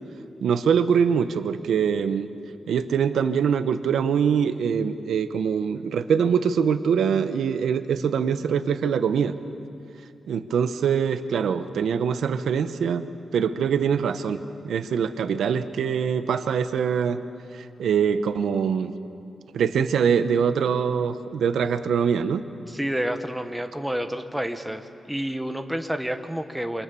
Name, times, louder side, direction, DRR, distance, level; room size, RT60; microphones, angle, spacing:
voice 1, 0.4-2.3 2.7-9.4 10.3-13.1 13.3-17.2 17.5-18.9 19.5-22.4, right 7 dB, 80° right, 10 dB, 1.0 m, -23 dB
voice 2, 22.7-26.8, equal, 5° right, 6 dB, 1.1 m, -29 dB
28.5 x 26.0 x 6.9 m, 2.6 s
wide cardioid pair, 175°, 0 cm